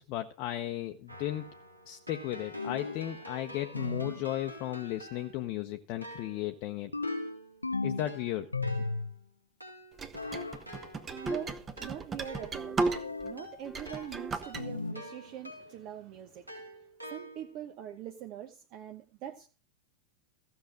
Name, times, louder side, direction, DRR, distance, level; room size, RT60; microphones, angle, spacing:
voice 1, 0.0-1.5 1.9-6.9 7.8-8.5, left 13 dB, 40° left, 0.8 m, -35 dB
Keyboard (musical), 1.1-5.6 6.0-15.9 16.5-17.7, equal, 90° right, 3.4 m, -48 dB
sound 1, 2.5-3.1 3.7-4.3 6.9-8.1 8.5-9.2 10.1-10.6 12.9-13.5 14.5-15.1, left 3 dB, 80° left, 0.6 m, -35 dB
sound 2, 10.0-13.3 13.6-14.6, right 3 dB, 20° right, 1.1 m, -35 dB
voice 2, 10.6-16.7 17.1-19.5, right 10 dB, 40° right, 0.9 m, -44 dB
15.0 x 6.6 x 6.2 m
figure-of-eight pair, 90°, 0 cm